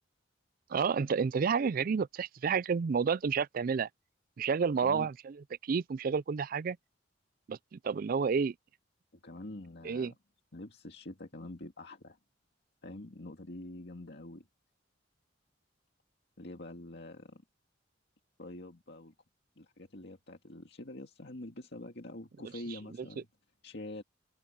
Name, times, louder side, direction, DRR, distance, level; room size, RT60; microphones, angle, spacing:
voice 1, 0.7-3.9 4.4-5.4 5.6-6.8 7.5-8.5 9.8-10.1, right 6 dB, 50° right, 0.4 m, -30 dB
voice 2, 4.8-5.1 9.2-10.2 10.5-12.2 12.8-14.5 16.4-17.4 18.4-19.1 19.6-23.3 23.6-24.0, left 1 dB, 60° left, 2.2 m, -45 dB
open air
head